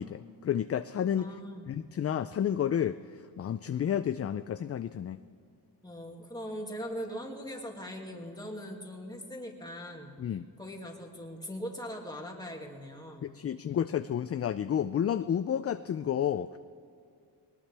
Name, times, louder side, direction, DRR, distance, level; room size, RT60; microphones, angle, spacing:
voice 1, 0.0-1.3 1.7-3.0 3.4-5.2 10.2-10.5 13.2-16.6, left 9 dB, 35° left, 12 dB, 0.4 m, -31 dB
voice 2, 1.2-1.7 5.8-10.2 10.6-13.4, equal, 10° left, 1 dB, 2.3 m, -41 dB
21.0 x 19.5 x 3.4 m, 2.4 s
cardioid pair, 95°, 42 cm